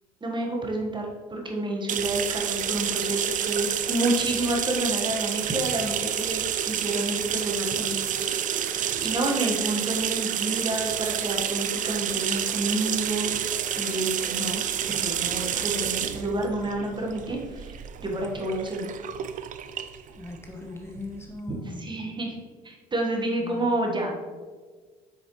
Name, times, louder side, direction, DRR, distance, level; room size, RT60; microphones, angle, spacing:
voice 1, 0.2-6.4 6.7-8.0 9.0-13.4 13.7-14.6 14.9-18.9 21.5-22.4 22.6-24.3, right 1 dB, 25° right, 0 dB, 1.5 m, -29 dB
sound 1, 1.9-21.3, right 9 dB, 45° right, 0.5 m, -29 dB
voice 2, 20.2-21.9 23.4-24.2, left 2 dB, 15° left, 2 dB, 1.2 m, -39 dB
7.8 x 6.5 x 3.2 m, 1.5 s
hypercardioid pair, 65°, 18 cm